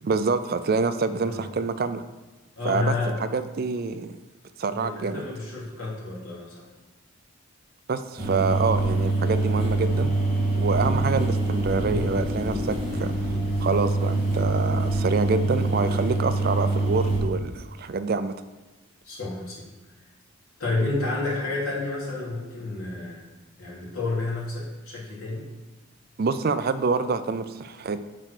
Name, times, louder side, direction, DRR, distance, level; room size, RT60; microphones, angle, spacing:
voice 1, 0.0-2.0 2.6-4.1 4.6-5.3 7.9-10.2 10.6-18.3 26.2-28.0, right 4 dB, 45° right, 12 dB, 0.4 m, -26 dB
voice 2, 2.6-3.2 4.7-6.7 12.8-13.2 19.0-19.6 20.6-23.2 23.6-25.5, left 2 dB, 75° left, -5 dB, 2.8 m, -30 dB
sound 1, 8.2-17.2, right 2 dB, 25° right, 2.1 m, -25 dB
7.7 x 4.5 x 6.5 m, 1.2 s
head